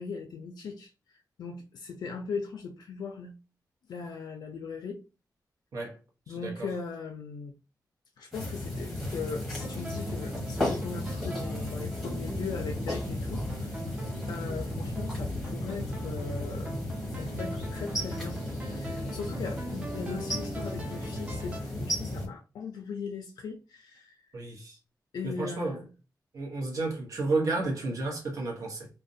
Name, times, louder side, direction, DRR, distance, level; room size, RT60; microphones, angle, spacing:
voice 1, 0.0-3.3 3.9-5.0 6.3-7.5 8.2-14.0 14.3-16.8 17.2-18.4 18.7-24.2 25.1-25.9, left 5 dB, 85° left, 0.4 m, -39 dB
voice 2, 6.3-6.7 24.3-24.8 25.2-25.8 26.3-28.9, right 3 dB, 50° right, 0.9 m, -32 dB
sound 1, 8.3-22.3, left 1 dB, ahead, 0.9 m, -34 dB
sound 2, 9.6-21.6, right 1 dB, 20° right, 0.5 m, -42 dB
2.4 x 2.1 x 2.5 m
wide cardioid pair, 180°, 7 cm